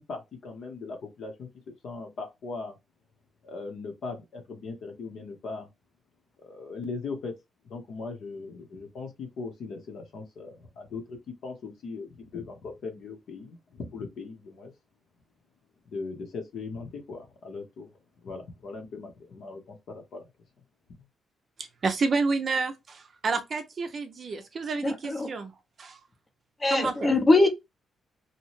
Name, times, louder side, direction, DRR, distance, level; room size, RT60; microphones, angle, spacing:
voice 1, 0.0-1.5 1.8-2.7 3.4-5.7 6.4-7.3 7.6-11.2 11.4-14.7 15.9-17.9 18.2-20.3, left 4 dB, 60° left, 0.9 m, -39 dB
voice 2, 21.6-25.5 25.8-26.0 26.7-27.1, right 4 dB, 35° right, 0.5 m, -29 dB
voice 3, 24.8-25.3 26.6-27.5, left 2 dB, 20° left, 0.6 m, -22 dB
2.8 x 2.2 x 3.0 m
wide cardioid pair, 170°, 0 cm